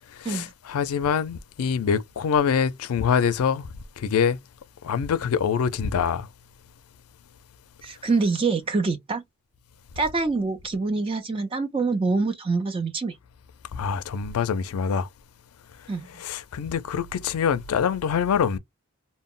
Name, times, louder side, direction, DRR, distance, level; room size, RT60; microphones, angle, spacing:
voice 1, 0.2-3.7 4.0-4.4 4.8-6.3 13.7-15.1 16.2-18.6, left 7 dB, 85° left, 0.4 m, -25 dB
voice 2, 7.8-9.2 10.0-13.1 15.9-16.1, right 4 dB, 25° right, 0.4 m, -25 dB
2.1 x 2.0 x 3.6 m
head